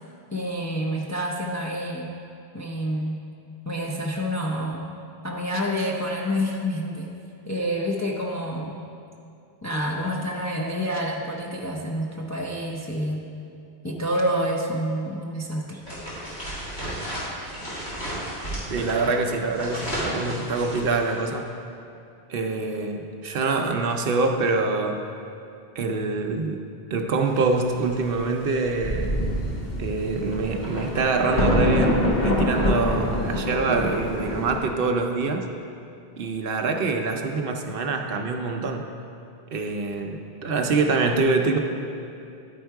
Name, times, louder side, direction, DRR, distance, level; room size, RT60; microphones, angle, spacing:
voice 1, 0.3-2.1 2.5-3.2 3.6-4.9 5.2-7.1 7.5-8.8 9.6-13.2 13.8-15.8, equal, 25° left, -2 dB, 0.4 m, -28 dB
sound 1, 15.8-21.3, equal, 75° left, 2.4 m, -33 dB
voice 2, 18.7-21.6 22.3-25.1 25.8-26.6 26.9-29.2 29.8-35.5 36.2-38.9 39.5-41.6, right 3 dB, 65° right, 4 dB, 0.7 m, -25 dB
Thunder, 28.4-28.5 28.8-34.6, left 1 dB, 45° left, 1.1 m, -25 dB
10.0 x 4.4 x 4.6 m, 2.6 s
omnidirectional pair, 1.1 m